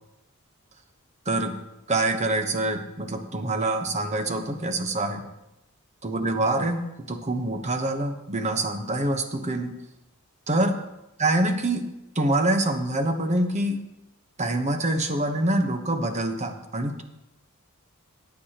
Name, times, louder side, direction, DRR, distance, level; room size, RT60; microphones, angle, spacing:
voice 1, 1.9-5.2 6.0-6.8 7.1-9.7 10.5-10.8 11.2-11.8 12.1-13.8 14.4-17.0, right 1 dB, 30° right, 6 dB, 1.0 m, -25 dB
16.5 x 9.6 x 3.0 m, 0.91 s
head